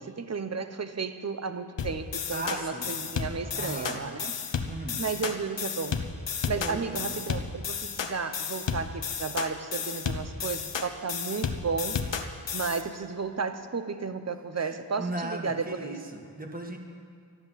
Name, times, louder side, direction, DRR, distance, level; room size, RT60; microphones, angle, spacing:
voice 1, 0.0-4.4 5.0-6.0 6.5-12.0 12.5-16.0, right 5 dB, 35° right, 10 dB, 0.9 m, -33 dB
sound 1, 1.8-12.8, left 6 dB, 80° left, 1.1 m, -33 dB
voice 2, 2.3-3.1 3.4-4.1 4.6-5.0 6.6-7.2 14.5-16.8, right 1 dB, 20° right, 2 dB, 1.7 m, -37 dB
12.5 x 10.5 x 7.5 m, 2.2 s
wide cardioid pair, 80°, 43 cm